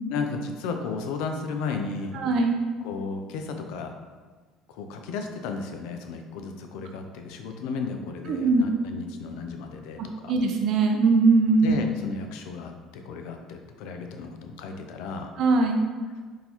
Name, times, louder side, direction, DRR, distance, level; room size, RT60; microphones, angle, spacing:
voice 1, 0.1-2.2 2.8-3.9 4.7-10.3 11.6-15.3, left 4 dB, 80° left, 5 dB, 0.4 m, -34 dB
voice 2, 2.1-2.6 8.3-8.7 10.0-11.8 15.4-15.8, right 3 dB, 60° right, 3 dB, 0.5 m, -21 dB
3.8 x 2.6 x 2.9 m, 1.4 s
supercardioid pair, 90°, 0 cm